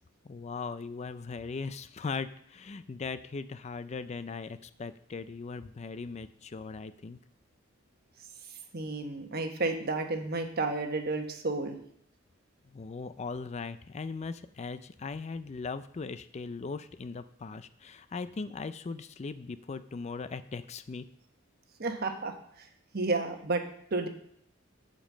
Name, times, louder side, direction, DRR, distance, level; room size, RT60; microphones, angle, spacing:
voice 1, 0.2-7.2 12.7-21.1, left 4 dB, 35° left, 13 dB, 0.4 m, -39 dB
voice 2, 8.7-11.8 21.8-22.7 22.9-23.6 23.9-24.1, right 3 dB, 50° right, 5 dB, 1.2 m, -31 dB
8.8 x 5.3 x 7.4 m, 0.69 s
head